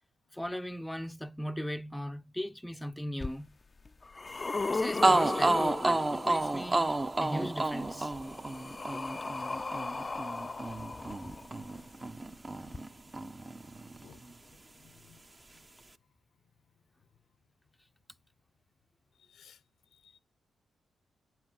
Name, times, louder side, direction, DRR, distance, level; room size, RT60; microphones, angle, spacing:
voice 1, 0.3-3.5 4.7-6.9 7.2-8.1 10.6-10.7, equal, 5° left, 0.8 m, -38 dB
sound 1, 3.2-3.3 3.9-6.6 7.8-11.7 12.7-12.8, left 3 dB, 35° left, 0.6 m, -36 dB
sound 2, 4.6-4.7 5.0-12.9 13.1-14.3, right 2 dB, 30° right, 1.1 m, -30 dB
voice 2, 14.0-15.2 15.5-15.6 19.2-19.6 19.9-20.2, left 8 dB, 75° left, 0.8 m, -60 dB
9.2 x 7.7 x 7.7 m
supercardioid pair, 55°, 0 cm